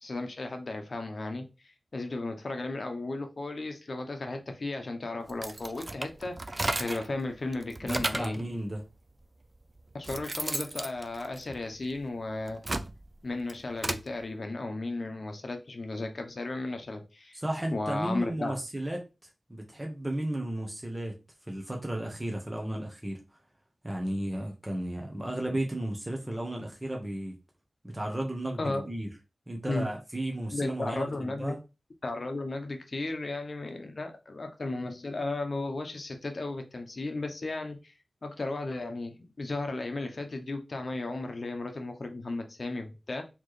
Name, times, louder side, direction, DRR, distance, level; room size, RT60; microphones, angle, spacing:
voice 1, 0.0-1.5 1.9-8.4 9.9-12.7 13.2-17.4 17.7-18.5 28.6-28.9 29.7-29.9 30.5-31.5 32.0-37.9 38.2-43.2, left 2 dB, 55° left, 0.8 m, -35 dB
sound 1, 5.3-7.1 7.5-8.4 9.2-9.3 9.8-11.9 12.4-14.1, right 2 dB, 30° right, 0.3 m, -34 dB
voice 2, 7.8-8.8 17.3-19.0 19.5-21.1 21.5-23.2 23.8-27.4 27.8-29.1 29.5-31.6, right 1 dB, 15° right, 0.9 m, -34 dB
4.2 x 3.0 x 3.2 m
wide cardioid pair, 95°, 0 cm